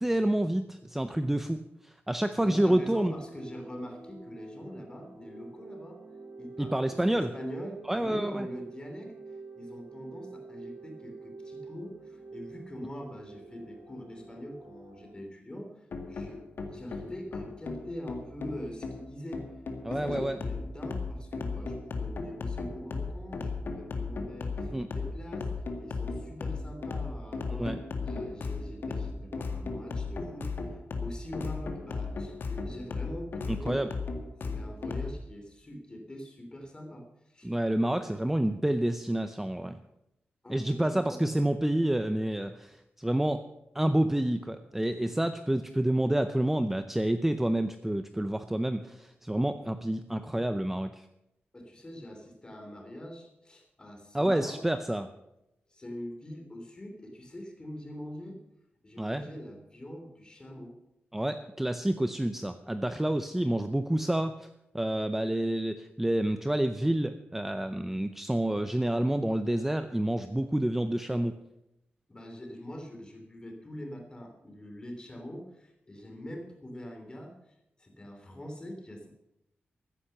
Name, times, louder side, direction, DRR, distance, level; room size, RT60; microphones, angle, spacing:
voice 1, 0.0-1.6 1.8-3.1 6.6-7.3 7.9-8.5 19.8-20.4 24.7-24.9 27.5-27.8 33.5-33.9 37.4-39.8 40.5-43.4 43.7-51.0 54.1-55.1 59.0-59.3 61.1-64.5 64.7-71.4, right 1 dB, 5° right, 9 dB, 0.6 m, -28 dB
voice 2, 2.4-6.0 6.4-16.5 16.7-19.5 19.8-25.5 25.8-33.8 34.4-37.5 37.9-38.2 40.4-41.4 51.5-54.6 55.7-58.4 58.8-60.8 72.1-79.1, equal, 20° left, 3 dB, 3.1 m, -44 dB
sound 1, 2.4-15.1, right 3 dB, 70° right, 4.5 m, -47 dB
sound 2, 15.9-35.1, left 4 dB, 60° left, 2.0 m, -36 dB
14.5 x 10.0 x 6.7 m, 0.87 s
wide cardioid pair, 135°, 4 cm